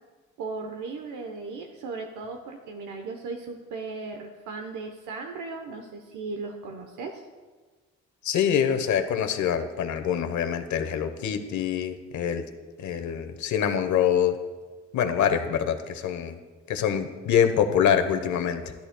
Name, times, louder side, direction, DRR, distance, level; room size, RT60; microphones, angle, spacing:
voice 1, 0.4-7.3, right 4 dB, 85° right, 3 dB, 0.9 m, -37 dB
voice 2, 8.2-12.4 12.8-14.4 14.9-16.4 16.7-18.7, left 8 dB, 70° left, 8 dB, 1.0 m, -25 dB
13.0 x 12.0 x 2.2 m, 1.4 s
cardioid pair, 90°, 30 cm